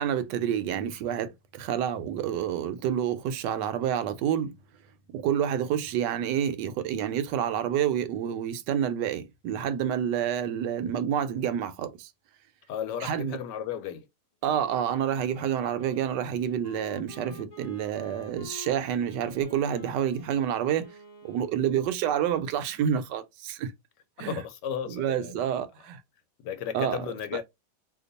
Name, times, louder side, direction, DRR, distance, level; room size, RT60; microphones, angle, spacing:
voice 1, 0.0-4.5 5.1-12.1 13.0-13.4 14.4-20.9 21.2-23.7 24.2-24.4 24.9-26.0 26.7-27.0, right 9 dB, 80° right, 1.2 m, -28 dB
voice 2, 12.7-14.1 24.2-25.6 26.4-27.4, left 8 dB, 80° left, 1.3 m, -34 dB
Wind instrument woodwind instrument, 14.4-22.1, left 2 dB, 35° left, 0.6 m, -49 dB
2.9 x 2.3 x 3.9 m
omnidirectional pair, 1.8 m